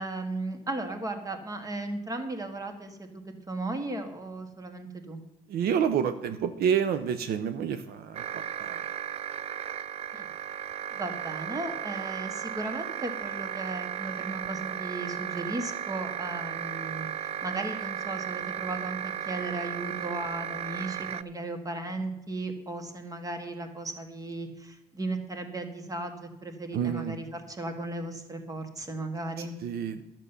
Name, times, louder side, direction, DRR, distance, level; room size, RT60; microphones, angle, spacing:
voice 1, 0.0-5.2 10.1-10.3 10.9-29.5, right 2 dB, 20° right, 7 dB, 1.6 m, -36 dB
voice 2, 5.5-8.8 26.7-27.2 29.6-30.0, right 8 dB, 65° right, 10 dB, 0.7 m, -29 dB
sound 1, 8.1-21.2, right 9 dB, 40° right, 0.4 m, -35 dB
11.5 x 7.6 x 6.8 m, 0.95 s
cardioid pair, 110°, 17 cm